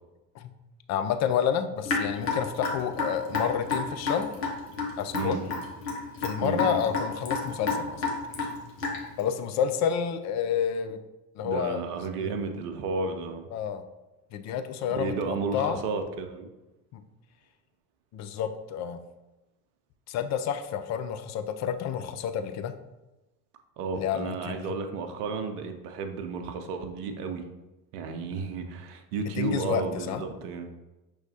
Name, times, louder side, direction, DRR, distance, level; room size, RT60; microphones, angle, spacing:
voice 1, 0.9-4.3 5.0-5.4 6.2-8.0 9.2-11.0 11.4-11.8 12.2-12.3 13.5-13.8 14.3-15.1 15.5-15.8 16.9-17.0 18.1-19.0 20.1-22.7 23.9-24.7 29.2-30.2, left 8 dB, 35° left, 8 dB, 0.5 m, -29 dB
Raindrop / Drip, 1.9-9.2, left 4 dB, 80° left, 1.0 m, -30 dB
voice 2, 5.1-5.5 6.4-6.9 11.4-13.5 14.9-16.5 23.8-27.4 27.9-30.7, right 4 dB, 70° right, 6 dB, 0.7 m, -32 dB
6.2 x 3.1 x 2.7 m, 1.0 s
figure-of-eight pair, 60°, 48 cm